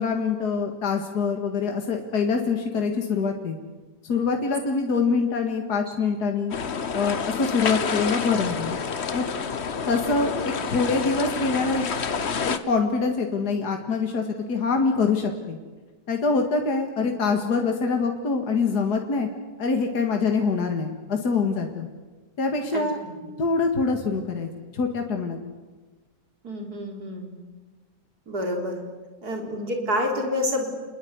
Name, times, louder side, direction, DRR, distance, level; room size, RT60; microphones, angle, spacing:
voice 1, 0.0-3.6 4.0-6.6 6.9-8.7 9.1-9.2 9.9-11.8 12.4-14.2 14.5-15.6 16.1-19.3 19.6-21.9 22.4-23.0 23.4-25.4, left 4 dB, 70° left, 3 dB, 2.5 m, -24 dB
sound 1, 6.5-12.6, left 6 dB, 45° left, 1.3 m, -28 dB
voice 2, 26.4-27.3 28.3-28.8 29.2-30.7, left 1 dB, 65° right, 3 dB, 4.4 m, -28 dB
28.5 x 21.0 x 9.6 m, 1.3 s
omnidirectional pair, 1.8 m